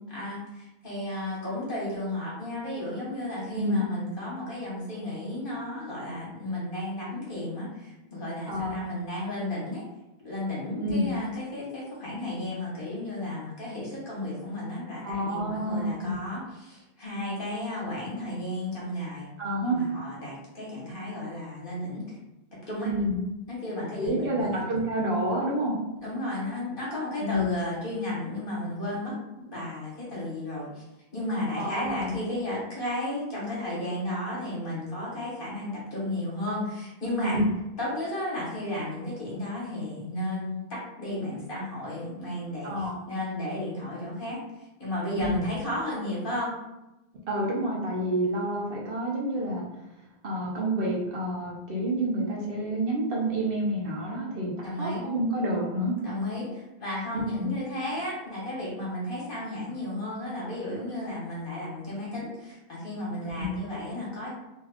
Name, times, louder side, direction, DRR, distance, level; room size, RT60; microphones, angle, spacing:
voice 1, 0.1-9.8 10.2-19.3 19.6-22.2 22.7-22.9 23.5-24.7 26.0-30.8 31.1-37.4 37.8-42.7 43.1-44.4 44.8-46.5 54.6-55.0 56.0-64.3, left 1 dB, 60° left, -6 dB, 1.4 m, -33 dB
voice 2, 3.5-3.9 8.5-8.7 10.8-11.1 15.0-16.2 19.4-19.8 22.8-23.2 24.0-25.8 27.2-27.6 31.5-32.1 37.2-37.4 42.6-43.0 45.2-45.5 47.3-49.6 50.2-54.5 54.8-55.9 57.4-57.5 63.2-63.5, right 1 dB, 65° right, -3 dB, 1.0 m, -28 dB
3.1 x 2.3 x 3.5 m, 0.98 s
omnidirectional pair, 1.1 m